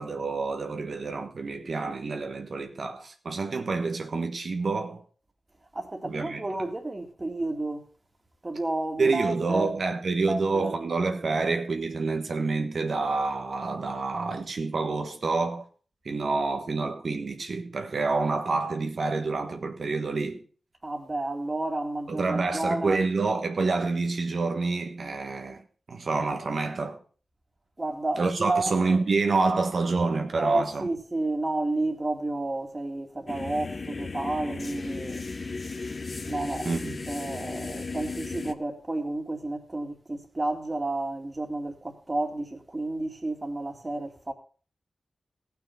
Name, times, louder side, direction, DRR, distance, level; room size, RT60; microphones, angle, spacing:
voice 1, 0.0-5.0 6.0-6.7 9.0-15.7 16.0-20.4 22.1-25.6 25.9-27.0 28.2-30.9 36.6-37.1, right 3 dB, 65° right, 1.4 m, -28 dB
voice 2, 5.7-7.9 8.4-9.7 10.2-10.9 20.8-23.0 27.8-28.8 30.4-35.2 36.2-36.7 37.1-44.3, right 2 dB, 25° right, 2.4 m, -31 dB
sound 1, 33.3-38.5, left 4 dB, 45° left, 0.9 m, -35 dB
16.5 x 6.0 x 5.7 m
wide cardioid pair, 75°, 0 cm